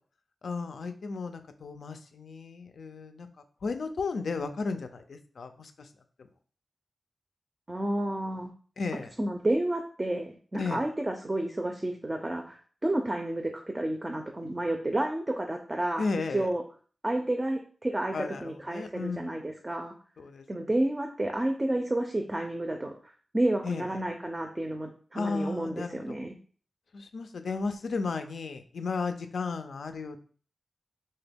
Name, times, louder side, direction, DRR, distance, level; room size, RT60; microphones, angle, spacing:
voice 1, 0.4-3.3 3.6-5.9 6.2-6.3 8.8-9.1 10.5-10.8 16.0-16.5 18.1-19.3 20.2-20.5 23.6-24.0 25.1-26.1 26.9-30.2, left 4 dB, 85° left, 7 dB, 0.3 m, -34 dB
voice 2, 7.7-8.5 9.2-16.0 16.3-16.6 17.0-19.9 20.5-26.3, right 1 dB, 25° right, 4 dB, 0.4 m, -30 dB
2.9 x 2.2 x 3.4 m, 0.43 s
cardioid pair, 65°, 0 cm